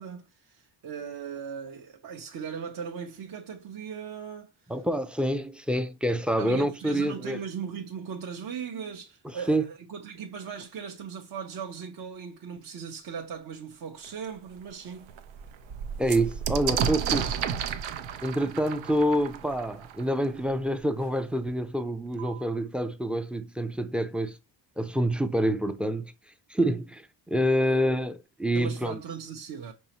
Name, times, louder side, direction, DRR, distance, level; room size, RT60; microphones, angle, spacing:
voice 1, 0.0-4.7 6.4-15.1 27.6-27.9 28.5-29.7, right 7 dB, 50° right, 0.7 m, -38 dB
voice 2, 4.7-7.4 9.5-9.6 16.0-17.3 18.2-24.4 24.8-26.1 26.5-29.0, right 1 dB, 5° right, 0.4 m, -27 dB
sound 1, 14.0-14.1 14.6-14.7 15.0-20.5 21.5-21.6 21.8-22.4, right 8 dB, 90° right, 0.6 m, -32 dB
5.5 x 3.2 x 2.9 m
cardioid pair, 95°, 45 cm